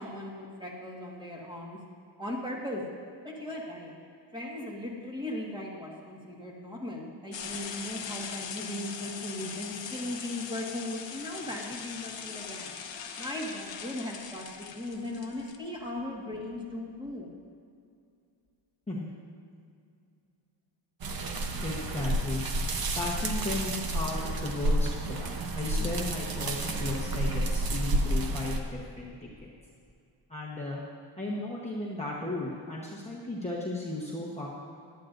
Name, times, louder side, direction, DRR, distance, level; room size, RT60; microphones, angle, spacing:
voice 1, 0.0-1.8 2.2-2.8 3.2-3.9 4.3-12.7 13.2-17.3, left 1 dB, 10° right, -3 dB, 1.7 m, -38 dB
sound 1, 7.3-15.6, left 7 dB, 65° left, 0.9 m, -41 dB
sound 2, 21.0-28.6, right 1 dB, 45° right, 0.9 m, -30 dB
voice 2, 21.6-22.4 23.0-29.1 29.4-29.5 30.3-30.8 31.2-34.5, left 2 dB, 15° left, -6 dB, 1.1 m, -35 dB
17.0 x 11.5 x 2.6 m, 2.4 s
wide cardioid pair, 170°, 48 cm